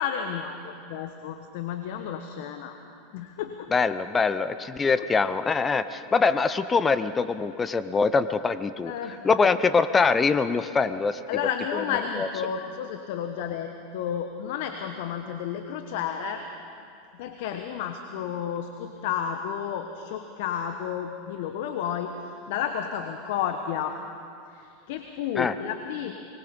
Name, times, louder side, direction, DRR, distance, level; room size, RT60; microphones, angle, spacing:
voice 1, 0.0-2.8 3.1-3.7 5.0-5.1 8.8-9.2 11.3-16.4 17.2-24.0 24.5-26.1, left 8 dB, 65° left, 7 dB, 1.2 m, -32 dB
voice 2, 3.7-8.9 9.2-11.2 12.2-12.3 25.3-25.5, left 4 dB, 20° left, 13 dB, 0.7 m, -23 dB
25.0 x 21.0 x 5.3 m, 2.6 s
hypercardioid pair, 90°, 0 cm